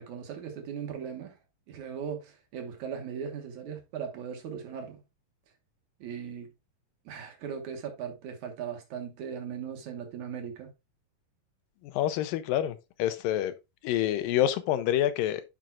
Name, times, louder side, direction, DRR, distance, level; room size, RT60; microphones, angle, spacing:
voice 1, 0.0-1.4 1.7-5.0 6.0-6.5 7.1-10.7, right 7 dB, 65° right, 2.5 m, -38 dB
voice 2, 11.8-13.5 13.8-15.4, left 12 dB, 85° left, 2.4 m, -27 dB
10.5 x 5.3 x 2.4 m
omnidirectional pair, 4.0 m